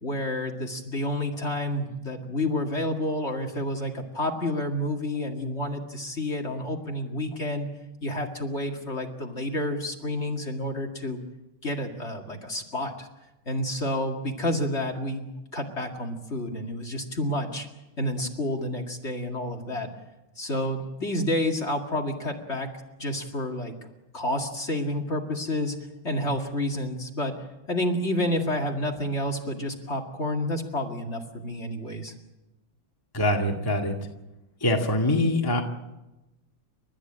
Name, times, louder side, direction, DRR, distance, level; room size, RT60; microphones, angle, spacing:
voice 1, 0.0-7.7 8.0-11.2 11.6-13.1 13.5-17.7 18.0-19.9 20.4-22.7 23.0-23.7 24.1-25.8 26.0-27.4 27.7-32.1, left 1 dB, 35° left, 2 dB, 2.4 m, -29 dB
voice 2, 33.1-34.1 34.6-35.6, left 1 dB, 10° left, 2 dB, 1.8 m, -24 dB
30.0 x 13.5 x 8.8 m, 1.0 s
omnidirectional pair, 2.2 m